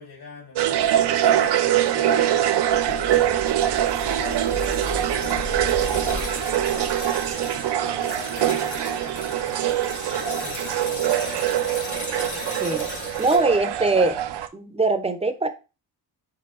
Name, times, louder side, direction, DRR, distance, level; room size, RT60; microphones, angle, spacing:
voice 1, 0.0-9.8 10.1-11.8, left 4 dB, 75° left, 2.2 m, -42 dB
sound 1, 0.6-14.5, right 11 dB, 90° right, 0.5 m, -23 dB
sound 2, 2.7-13.4, left 4 dB, 50° left, 1.1 m, -36 dB
voice 2, 13.2-14.2 14.5-15.5, right 3 dB, 15° right, 0.4 m, -22 dB
4.7 x 4.5 x 2.4 m
wide cardioid pair, 140°, 39 cm